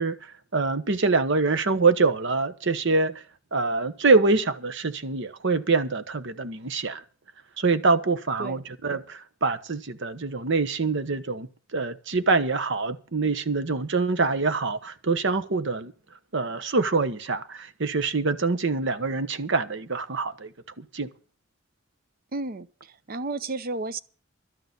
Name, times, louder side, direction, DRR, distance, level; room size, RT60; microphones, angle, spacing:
voice 1, 0.0-3.2 3.5-7.0 7.6-15.9 16.3-20.5 20.8-21.1, right 3 dB, 60° right, 1.1 m, -25 dB
voice 2, 22.3-24.0, right 3 dB, 45° right, 0.7 m, -32 dB
12.5 x 6.8 x 9.6 m
head